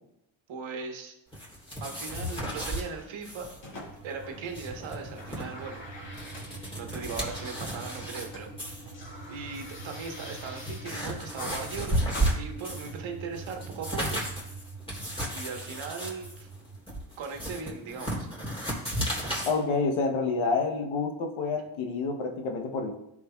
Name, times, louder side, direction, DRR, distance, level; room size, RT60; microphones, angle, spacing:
voice 1, 0.5-1.1 1.8-3.5 4.0-5.8 6.7-8.8 9.3-12.0 12.3-14.2 15.3-16.5 17.2-18.3, right 5 dB, 75° right, 4 dB, 1.2 m, -38 dB
sound 1, 1.3-2.9 3.2-3.6 3.8-3.9 4.3-5.4 6.0-8.3 8.6-8.9 9.7-9.8 10.3-13.0 13.3-19.5, right 1 dB, 10° left, 3.0 m, -33 dB
sound 2, 3.0-4.7 4.9-8.5 8.7-13.2 14.2-14.3, left 1 dB, 70° left, 2.5 m, -46 dB
sound 3, 3.5-16.8, right 3 dB, 90° right, 0.8 m, -45 dB
voice 2, 19.4-23.0, left 4 dB, 90° left, 3 dB, 1.0 m, -28 dB
13.0 x 5.0 x 2.3 m, 0.84 s
cardioid pair, 80°, 47 cm